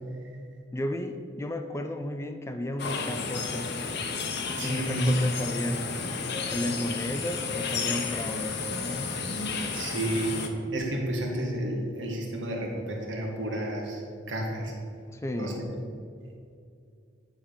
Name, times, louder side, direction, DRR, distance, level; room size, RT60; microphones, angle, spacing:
voice 1, 0.7-4.0 4.6-6.0 6.5-9.1 15.1-15.7, left 1 dB, 15° left, 6 dB, 0.3 m, -34 dB
sound 1, 2.8-10.5, left 4 dB, 55° left, 0.8 m, -32 dB
voice 2, 4.6-5.1 9.7-10.5 10.7-14.7 15.3-15.5, right 1 dB, 65° right, -1 dB, 1.8 m, -31 dB
9.8 x 3.7 x 6.7 m, 2.4 s
head